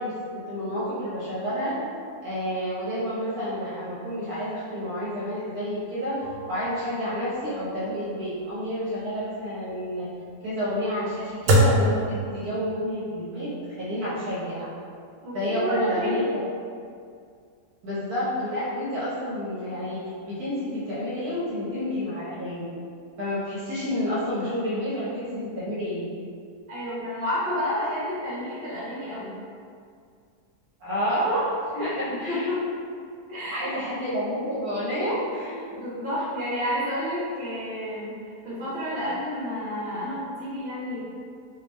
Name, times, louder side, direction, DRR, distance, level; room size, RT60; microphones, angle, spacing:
voice 1, 0.0-1.8 2.2-10.1 10.4-14.7 15.3-16.4 17.8-22.6 23.2-26.0 30.8-32.4 33.5-35.6, equal, 70° right, -10 dB, 1.4 m, -29 dB
sound 1, 6.2-12.9, equal, 90° right, 1.2 m, -27 dB
voice 2, 15.2-16.4 26.7-29.4 31.7-32.0 32.3-32.6 33.3-33.7 35.7-38.2 38.4-41.0, left 1 dB, 35° right, -10 dB, 1.4 m, -30 dB
3.4 x 3.1 x 3.1 m, 2.3 s
omnidirectional pair, 1.7 m